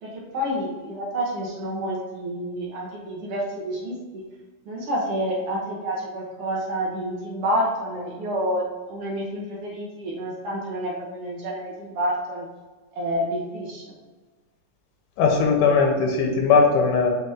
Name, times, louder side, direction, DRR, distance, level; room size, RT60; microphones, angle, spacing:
voice 1, 0.0-4.2 4.6-12.5 12.9-14.0, equal, 60° right, -4 dB, 1.8 m, -29 dB
voice 2, 15.2-17.1, left 5 dB, 90° left, 2 dB, 2.6 m, -19 dB
7.3 x 4.0 x 3.4 m, 1.3 s
omnidirectional pair, 3.7 m